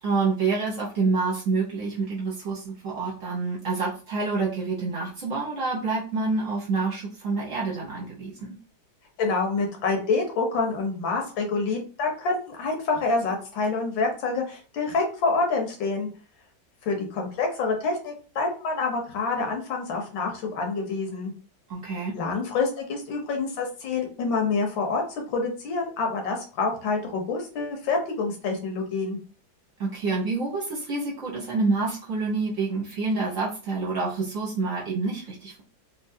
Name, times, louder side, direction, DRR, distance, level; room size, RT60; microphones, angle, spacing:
voice 1, 0.0-8.5 21.7-22.1 29.8-35.6, right 3 dB, 50° right, -5 dB, 1.2 m, -27 dB
voice 2, 9.2-16.1 16.8-21.3 22.1-25.0 25.3-29.2, left 4 dB, 80° left, 2 dB, 1.6 m, -27 dB
3.6 x 2.7 x 2.7 m, 0.37 s
omnidirectional pair, 2.1 m